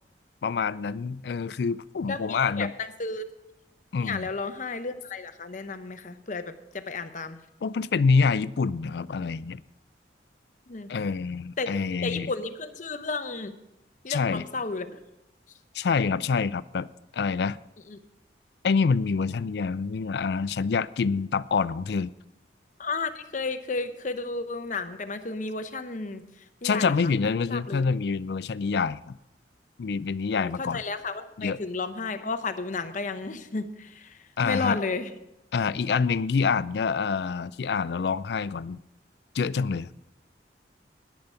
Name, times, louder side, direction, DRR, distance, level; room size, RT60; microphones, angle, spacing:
voice 1, 0.4-2.7 3.9-4.3 7.6-9.6 10.9-12.3 14.1-14.4 15.7-16.9 17.1-17.6 18.6-22.1 26.6-29.2 29.8-30.8 31.4-31.6 34.4-34.8 35.5-38.8 39.3-40.0, left 5 dB, 65° left, 0.4 m, -26 dB
voice 2, 2.1-3.2 4.0-7.4 10.7-10.9 11.6-11.7 12.0-13.5 14.0-15.0 17.9-18.0 22.8-26.2 26.6-27.1 27.5-27.9 30.3-34.2 34.4-35.1, left 4 dB, 45° left, 0.8 m, -32 dB
10.5 x 10.5 x 5.6 m
head